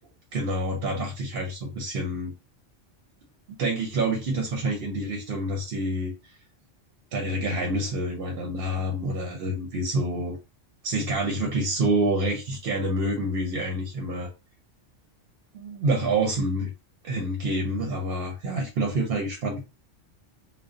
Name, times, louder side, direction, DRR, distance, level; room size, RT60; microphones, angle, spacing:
voice 1, 0.3-2.3 3.6-6.1 7.1-10.4 10.8-14.3 15.5-16.7 17.0-19.6, right 1 dB, 60° right, 1 dB, 0.7 m, -27 dB
2.5 x 2.0 x 2.4 m, 0.28 s
omnidirectional pair, 1.3 m